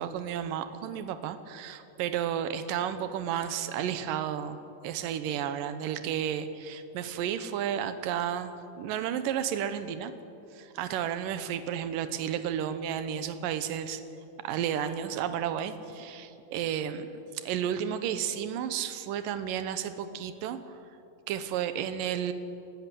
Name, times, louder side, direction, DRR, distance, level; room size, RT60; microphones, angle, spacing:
voice 1, 0.0-10.1 10.5-14.0 14.4-17.1 17.3-20.8 21.3-22.3, right 9 dB, 85° right, 10 dB, 2.6 m, -32 dB
24.0 x 13.0 x 10.0 m, 2.7 s
omnidirectional pair, 3.9 m